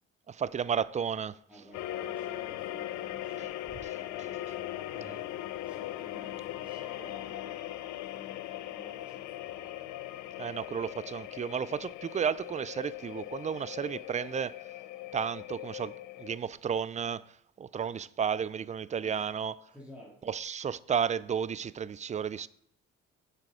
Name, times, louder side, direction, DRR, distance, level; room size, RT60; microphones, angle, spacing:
voice 1, 0.3-1.4 10.4-14.5 15.1-17.2 17.6-19.5 20.3-22.5, right 7 dB, 25° right, 0.4 m, -32 dB
voice 2, 1.5-5.3 5.6-10.6 19.0-19.2 19.7-20.3, equal, 5° right, 2.5 m, -54 dB
sound 1, 1.7-16.4, left 14 dB, 70° left, 0.6 m, -40 dB
7.7 x 7.6 x 4.9 m
supercardioid pair, 75°, 31 cm